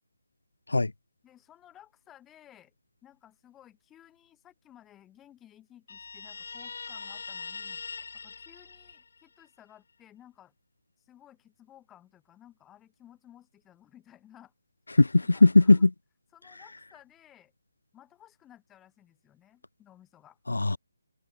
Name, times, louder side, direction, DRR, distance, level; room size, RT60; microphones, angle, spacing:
voice 1, 1.2-2.7 3.0-7.8 8.1-10.5 11.0-14.5 15.3-15.9 16.3-17.5 17.9-20.4, left 11 dB, 10° left, 3.1 m, -56 dB
Guitar, 5.9-9.5, left 4 dB, 60° left, 3.1 m, -42 dB
voice 2, 15.0-15.9 20.5-20.8, left 2 dB, 90° left, 0.4 m, -19 dB
open air
figure-of-eight pair, 160°, 0 cm